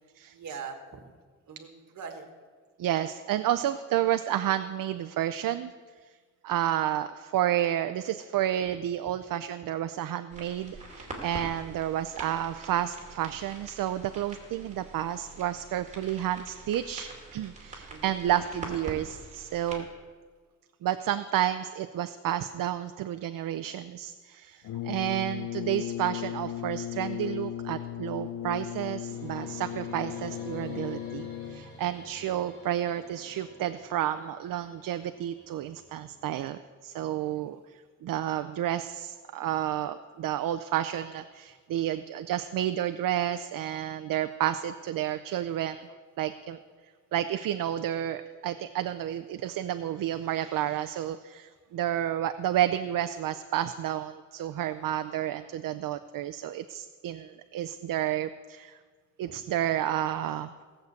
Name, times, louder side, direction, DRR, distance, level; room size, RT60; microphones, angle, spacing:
voice 1, 0.3-1.0 1.5-2.3 8.7-8.8 17.9-18.1 37.3-37.5, right 6 dB, 60° right, 5 dB, 1.8 m, -42 dB
voice 2, 2.8-5.7 6.4-19.9 20.8-45.9 46.2-46.6 47.1-58.8 59.2-60.5, right 11 dB, 75° right, 9 dB, 0.6 m, -31 dB
sound 1, 10.3-19.8, right 2 dB, 20° right, 2.6 m, -45 dB
Brass instrument, 24.6-31.8, left 11 dB, 80° left, 0.5 m, -36 dB
sound 2, 29.1-36.4, left 1 dB, 40° left, 4.2 m, -49 dB
17.0 x 6.7 x 8.1 m, 1.5 s
wide cardioid pair, 175°, 33 cm